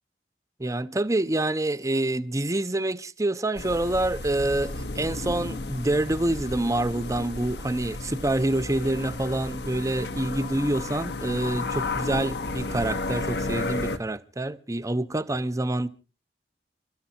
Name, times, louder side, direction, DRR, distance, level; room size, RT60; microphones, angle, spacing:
voice 1, 0.6-15.9, right 1 dB, 20° right, 0.7 m, -27 dB
sound 1, 3.6-14.0, left 2 dB, 70° left, 1.2 m, -33 dB
30.0 x 13.5 x 2.8 m
head